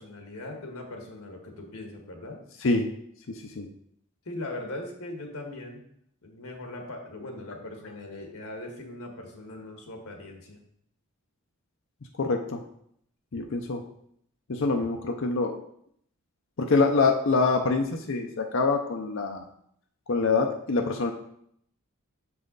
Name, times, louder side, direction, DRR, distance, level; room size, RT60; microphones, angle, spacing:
voice 1, 0.0-2.4 4.2-5.8 6.2-10.6, left 2 dB, 80° left, 2 dB, 1.5 m, -40 dB
voice 2, 12.2-12.6 13.3-13.8 14.5-15.6 16.6-19.4 20.1-21.1, left 3 dB, 60° left, 3 dB, 0.6 m, -25 dB
6.4 x 5.7 x 3.9 m, 0.70 s
head